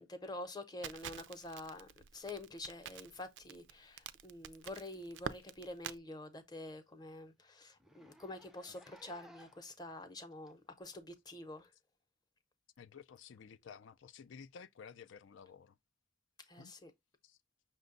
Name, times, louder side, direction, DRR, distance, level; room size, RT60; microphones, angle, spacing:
voice 1, 0.0-11.7 16.5-16.9, left 2 dB, 20° left, 0.7 m, -47 dB
Crackle, 0.8-6.0, right 8 dB, 70° right, 0.4 m, -47 dB
Zipper (clothing), 6.9-7.1 7.8-9.7 10.5-10.6 11.6-11.7, right 1 dB, ahead, 0.4 m, -61 dB
voice 2, 12.8-15.8 16.6-16.7 17.2-17.4, left 6 dB, 80° left, 0.4 m, -53 dB
6.0 x 2.2 x 3.8 m
head